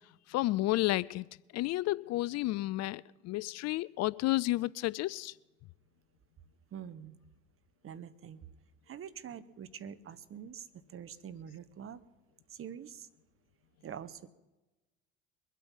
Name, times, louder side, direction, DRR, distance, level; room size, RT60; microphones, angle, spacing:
voice 1, 0.3-1.3 1.5-5.3, left 18 dB, 55° left, 0.4 m, -31 dB
voice 2, 6.7-7.2 7.8-8.5 8.9-12.0 12.5-13.1 13.8-14.3, right 8 dB, 40° right, 1.1 m, -45 dB
23.0 x 8.4 x 5.5 m
hypercardioid pair, 70°, 32 cm